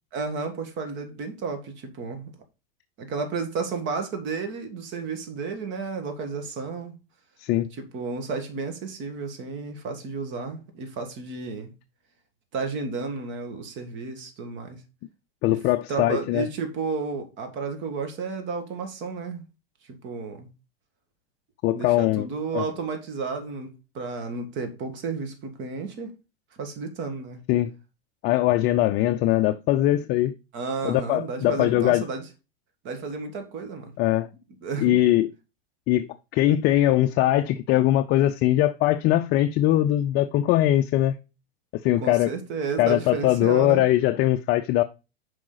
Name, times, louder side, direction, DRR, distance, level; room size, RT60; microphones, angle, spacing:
voice 1, 0.1-2.3 3.0-6.9 7.7-11.7 12.5-14.8 15.4-15.6 15.9-19.5 19.9-20.5 21.7-26.1 26.6-27.4 30.5-32.3 32.8-33.9 34.6-35.0 42.0-43.8, right 4 dB, 40° right, 1.6 m, -32 dB
voice 2, 15.4-16.5 21.6-22.3 22.5-22.6 27.5-27.7 28.2-30.3 30.8-32.0 34.0-34.3 34.8-35.3 35.9-41.2 41.8-42.3 42.8-44.8, left 14 dB, 35° left, 0.4 m, -21 dB
6.2 x 4.9 x 3.8 m
supercardioid pair, 125°, 30 cm